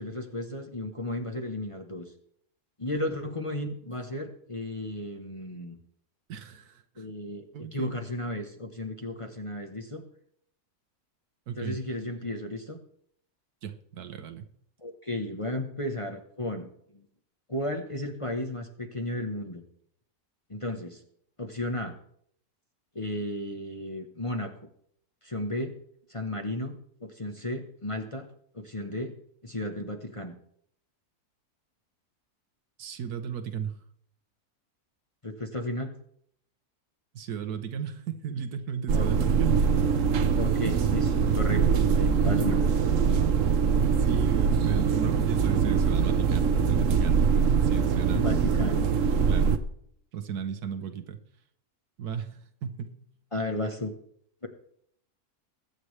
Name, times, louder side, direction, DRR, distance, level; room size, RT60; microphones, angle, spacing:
voice 1, 0.0-2.1 2.8-5.8 7.0-10.0 11.6-12.8 14.8-17.0 17.5-19.6 20.5-21.0 21.4-21.9 22.9-24.5 25.2-25.7 26.1-28.3 28.5-29.1 29.4-30.3 35.2-35.9 38.9-39.1 40.4-42.6 48.1-48.8 53.3-53.9 54.4-54.5, left 1 dB, 25° left, 3 dB, 1.0 m, -34 dB
voice 2, 6.3-7.1 7.5-8.0 11.5-11.8 13.6-14.5 32.8-33.7 37.1-39.6 39.8-40.2 43.7-47.3 47.6-48.8 49.3-49.5 50.1-51.2 52.0-52.9, right 8 dB, 80° right, 8 dB, 1.5 m, -35 dB
sound 1, 38.9-49.6, right 6 dB, 60° right, 1.1 m, -23 dB
21.5 x 8.9 x 3.3 m, 0.68 s
omnidirectional pair, 1.6 m